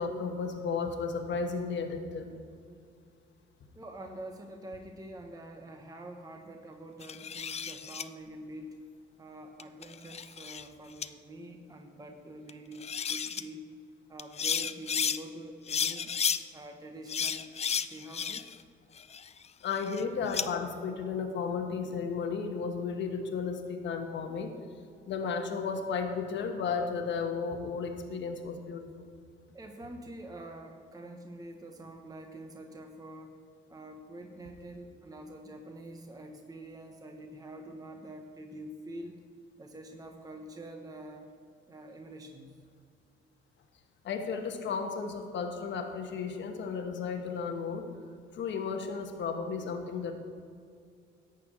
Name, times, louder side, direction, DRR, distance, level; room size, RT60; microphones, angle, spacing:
voice 1, 0.0-2.3 19.6-24.5 25.1-29.1 44.0-47.8 48.3-50.1, left 5 dB, 65° left, 4 dB, 1.2 m, -34 dB
voice 2, 3.7-8.8 9.2-13.6 14.1-16.1 16.5-17.5 17.9-18.6 29.5-33.4 33.7-39.2 39.6-41.3 41.7-42.6, right 1 dB, 20° right, 3 dB, 1.0 m, -46 dB
sound 1, 7.0-8.0 9.6-10.7 11.0-11.1 12.5-12.6 12.8-13.4 14.2-15.2 15.7-16.4 17.1-18.6 19.0-20.5, left 7 dB, 35° left, 0.4 m, -33 dB
11.5 x 4.6 x 8.3 m, 2.3 s
cardioid pair, 90°, 20 cm